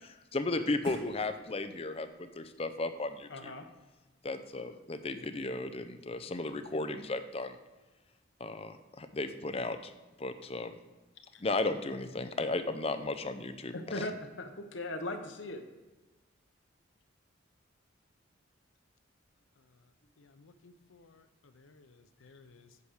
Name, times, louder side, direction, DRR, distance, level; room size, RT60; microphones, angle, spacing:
voice 1, 0.0-3.5 4.2-7.6 8.4-9.9 10.2-10.7 11.4-14.1, left 2 dB, 30° left, 9 dB, 0.6 m, -35 dB
sound 1, 0.8-6.2, right 2 dB, 55° right, 2.1 m, -60 dB
voice 2, 3.3-3.6 11.3-11.4 13.7-15.6, left 1 dB, 65° left, 5 dB, 1.0 m, -39 dB
voice 3, 19.6-19.9 20.2-22.8, left 3 dB, 85° left, 10 dB, 0.7 m, -60 dB
8.3 x 5.0 x 6.4 m, 1.2 s
head